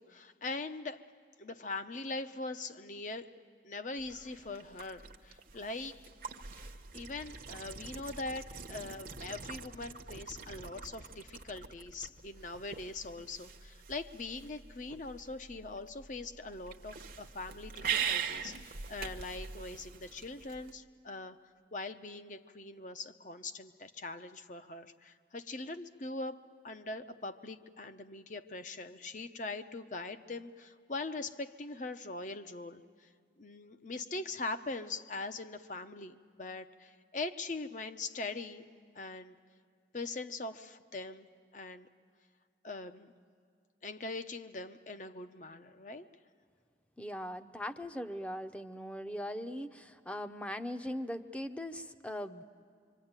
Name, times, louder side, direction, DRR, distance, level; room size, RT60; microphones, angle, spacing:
voice 1, 0.0-6.1 6.6-21.4 21.7-33.1 33.4-38.7 38.9-39.3 39.9-41.9 42.6-43.1 43.8-46.1, left 3 dB, 45° left, 9 dB, 0.8 m, -42 dB
sound 1, 4.0-20.7, right 7 dB, 50° right, 0.9 m, -43 dB
voice 2, 47.0-52.4, equal, 5° left, 7 dB, 0.7 m, -40 dB
26.0 x 25.0 x 8.9 m, 2.2 s
head